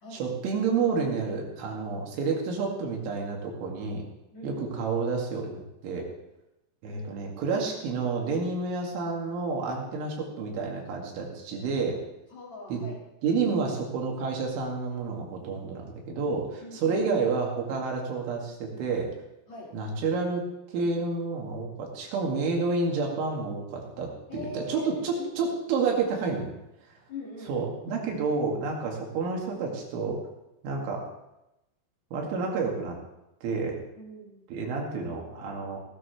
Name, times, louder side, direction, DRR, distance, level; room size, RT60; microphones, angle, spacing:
voice 1, 0.2-4.1 4.4-5.5 5.8-6.1 6.8-12.0 12.7-12.9 13.2-19.1 19.7-20.4 20.7-26.5 27.5-30.2 30.6-31.0 32.1-33.0 33.4-33.8 34.5-35.8, right 4 dB, 75° right, 0 dB, 4.4 m, -29 dB
voice 2, 4.3-4.6 6.8-7.1 12.3-13.0 16.6-17.0 19.5-19.8 24.3-25.6 27.1-28.1 34.0-34.5, left 2 dB, 50° left, -4 dB, 2.4 m, -42 dB
17.0 x 13.5 x 3.2 m, 0.90 s
omnidirectional pair, 5.7 m